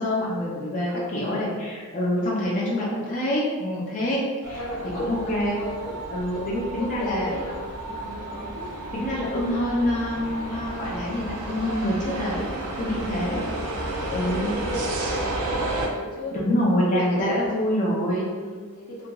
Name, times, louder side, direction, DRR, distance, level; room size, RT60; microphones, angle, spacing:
voice 1, 0.0-4.6 4.9-5.6 6.1-7.3 8.3-8.5 8.9-12.4 12.8-13.4 14.1-14.5 16.3-18.3, left 1 dB, 35° left, -5 dB, 0.5 m, -26 dB
voice 2, 0.9-1.5 4.3-9.2 13.1-17.4 18.3-19.1, left 1 dB, 80° left, -4 dB, 0.7 m, -36 dB
sound 1, 4.4-15.9, right 1 dB, 75° right, 0.4 m, -32 dB
2.9 x 2.5 x 2.2 m, 1.5 s
head